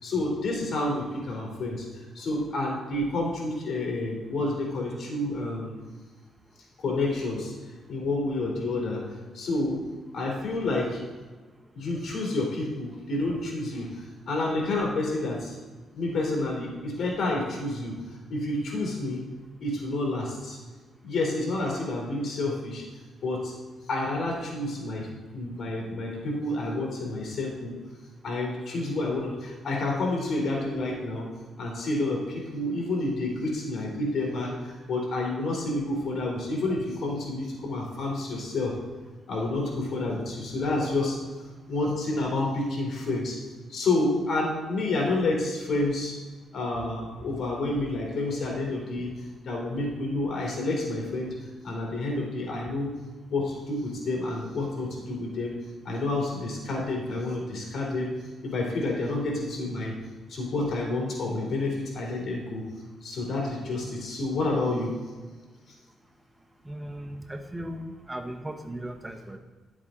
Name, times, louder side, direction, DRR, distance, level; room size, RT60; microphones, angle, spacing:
voice 1, 0.0-5.8 6.8-7.5 7.9-9.0 9.3-9.8 10.1-11.0 11.7-15.6 15.9-19.2 19.6-20.6 21.0-22.8 23.2-23.5 23.9-27.8 28.2-31.3 31.6-38.7 39.3-41.2 41.7-43.4 43.7-46.1 46.5-49.1 49.4-51.3 51.6-52.9 53.3-55.5 55.8-58.1 58.4-59.9 60.3-62.6 63.0-64.9, left 2 dB, 55° left, -2 dB, 3.1 m, -29 dB
voice 2, 66.7-69.4, right 1 dB, 15° right, 7 dB, 0.8 m, -37 dB
11.0 x 7.4 x 3.7 m, 1.4 s
cardioid pair, 90°, 0 cm